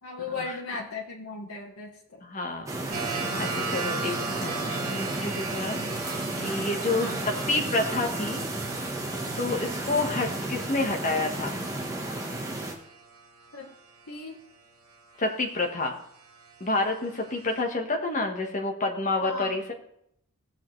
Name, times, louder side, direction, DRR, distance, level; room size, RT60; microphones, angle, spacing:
voice 1, 0.0-2.2 7.0-7.2 13.5-13.7 14.1-14.4 19.2-19.6, left 3 dB, 85° left, -1 dB, 1.4 m, -37 dB
voice 2, 2.2-8.4 9.4-11.5 15.2-16.0 16.6-19.7, left 2 dB, 35° left, 1 dB, 1.5 m, -29 dB
sound 1, 2.7-12.7, right 2 dB, 15° right, 1.3 m, -33 dB
sound 2, 2.9-13.6 15.7-17.6, right 4 dB, 80° right, 2.0 m, -38 dB
19.0 x 6.7 x 3.3 m, 0.74 s
head